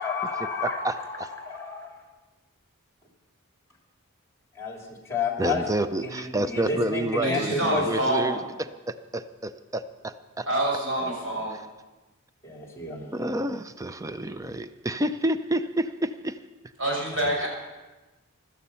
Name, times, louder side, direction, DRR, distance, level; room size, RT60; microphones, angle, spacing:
voice 1, 0.0-1.9 4.6-4.8 5.1-5.6 6.0-8.0 11.0-11.1 12.4-13.3, left 4 dB, 15° left, 0 dB, 3.1 m, -30 dB
voice 2, 0.6-1.3 5.4-8.4 8.9-10.5 13.1-16.4, right 1 dB, 15° right, 11 dB, 0.5 m, -29 dB
voice 3, 7.2-8.4 10.5-11.6 16.8-17.5, right 1 dB, 60° right, -2 dB, 6.2 m, -26 dB
16.0 x 13.0 x 5.7 m, 1.1 s
head